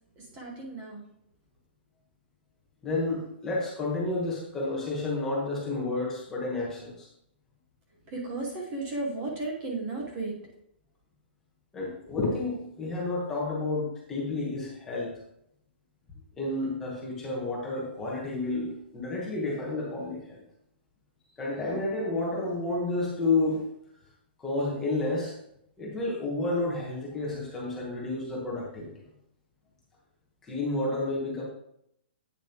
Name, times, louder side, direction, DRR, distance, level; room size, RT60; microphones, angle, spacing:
voice 1, 0.2-1.0 8.1-10.5, right 2 dB, 20° right, -1 dB, 1.0 m, -34 dB
voice 2, 2.8-7.1 11.7-15.1 16.4-20.4 21.4-23.6 24.4-25.4 25.8-28.9 30.4-31.4, left 2 dB, 5° left, -4 dB, 1.1 m, -30 dB
8.5 x 7.0 x 2.9 m, 0.76 s
hypercardioid pair, 180°, 6 cm